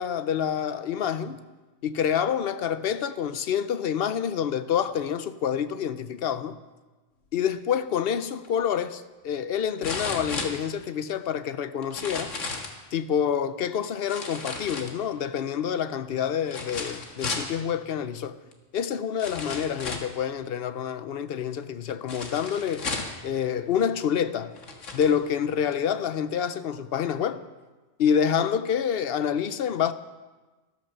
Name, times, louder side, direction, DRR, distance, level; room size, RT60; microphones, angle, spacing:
voice 1, 0.0-1.4 1.8-6.6 7.3-12.3 12.9-18.4 18.7-22.9 23.2-24.5 24.9-27.4 28.0-29.9, left 8 dB, 60° left, 0.8 m, -27 dB
sound 1, 8.4-8.5 9.8-11.1 11.8-12.8 14.1-15.3 16.5-17.5 18.5-18.6 19.2-20.2 22.1-23.2 24.0-24.1 24.5-25.1 25.7-25.8, left 3 dB, 85° left, 1.9 m, -34 dB
13.5 x 12.5 x 6.6 m
omnidirectional pair, 1.3 m